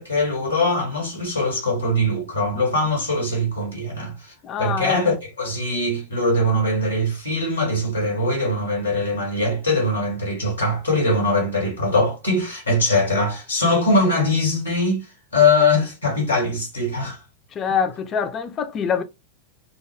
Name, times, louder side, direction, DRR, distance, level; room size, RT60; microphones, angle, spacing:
voice 1, 0.0-15.1 15.3-17.2, left 2 dB, 85° left, 1.1 m, -22 dB
voice 2, 4.4-5.0 17.5-19.0, left 7 dB, 30° left, 0.4 m, -24 dB
2.3 x 2.2 x 3.2 m
figure-of-eight pair, 90°, 0 cm